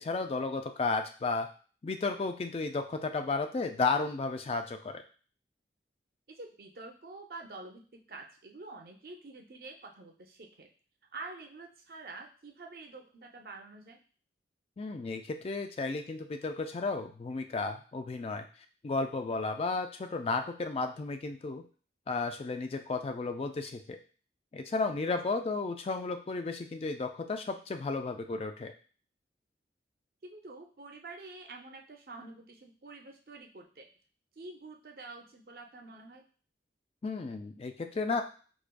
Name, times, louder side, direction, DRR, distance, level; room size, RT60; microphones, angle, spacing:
voice 1, 0.0-1.5 1.8-5.0 14.8-18.5 18.8-21.6 22.1-24.0 24.5-28.7 37.0-38.2, left 3 dB, 35° left, 6 dB, 0.3 m, -33 dB
voice 2, 6.3-10.7 11.1-14.0 30.2-33.9 34.4-36.2, right 3 dB, 55° right, 2 dB, 0.5 m, -47 dB
4.7 x 2.5 x 2.2 m, 0.40 s
head